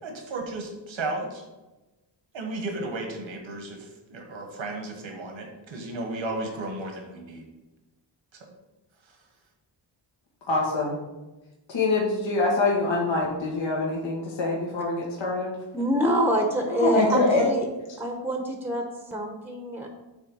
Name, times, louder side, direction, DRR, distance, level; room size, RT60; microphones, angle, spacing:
voice 1, 0.0-1.4 2.3-7.4, right 2 dB, 80° right, 2 dB, 1.6 m, -34 dB
voice 2, 10.5-11.0 11.7-15.6 16.7-17.4, left 3 dB, 75° left, -3 dB, 1.5 m, -24 dB
voice 3, 15.7-17.7 18.0-19.9, right 1 dB, 5° right, 3 dB, 0.9 m, -26 dB
7.9 x 3.4 x 5.4 m, 1.1 s
wide cardioid pair, 95°, 46 cm